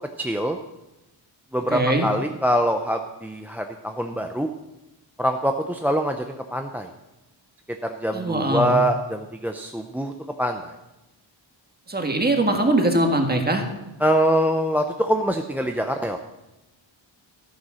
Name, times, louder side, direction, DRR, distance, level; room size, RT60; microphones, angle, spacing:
voice 1, 0.0-0.6 1.5-4.5 5.2-6.9 7.8-10.1 10.4-10.7 14.0-16.2, equal, 5° right, 5 dB, 0.5 m, -24 dB
voice 2, 1.7-2.1 8.1-8.8 11.9-13.7, right 1 dB, 20° right, 4 dB, 1.6 m, -21 dB
13.5 x 9.8 x 6.3 m, 0.98 s
wide cardioid pair, 170°, 47 cm